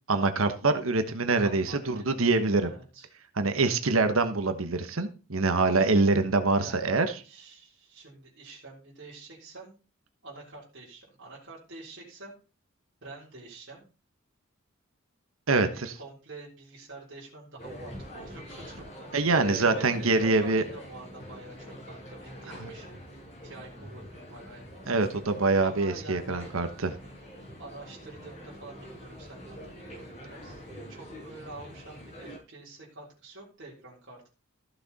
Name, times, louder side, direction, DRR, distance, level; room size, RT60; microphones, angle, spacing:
voice 1, 0.1-2.7 3.4-7.1 15.5-15.7 19.1-20.6 22.6-22.7 24.9-26.9, right 3 dB, 80° right, 1.2 m, -25 dB
voice 2, 1.3-3.1 6.6-9.8 10.2-12.4 13.0-13.8 15.5-19.1 19.5-22.9 23.4-25.0 25.6-26.6 27.6-30.6 30.9-34.3, right 2 dB, 55° right, 3.7 m, -47 dB
sound 1, 17.6-32.4, equal, 35° left, 5.2 m, -44 dB
14.0 x 6.7 x 4.1 m
head